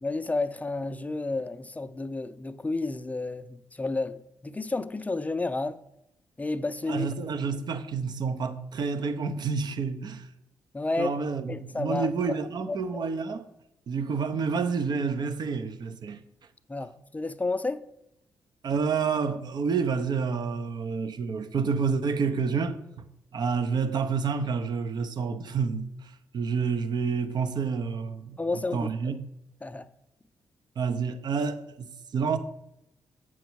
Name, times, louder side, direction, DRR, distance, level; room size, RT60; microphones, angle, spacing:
voice 1, 0.0-5.8 6.4-7.1 10.7-11.1 11.5-12.4 12.7-13.1 16.7-17.8 28.4-28.9 29.6-29.9, left 3 dB, 20° left, 0.5 m, -31 dB
voice 2, 6.9-10.3 11.0-13.5 13.9-16.2 18.6-22.8 23.3-29.2 30.8-32.4, right 5 dB, 60° right, 0.7 m, -29 dB
7.0 x 6.1 x 4.6 m
cardioid pair, 65°, 8 cm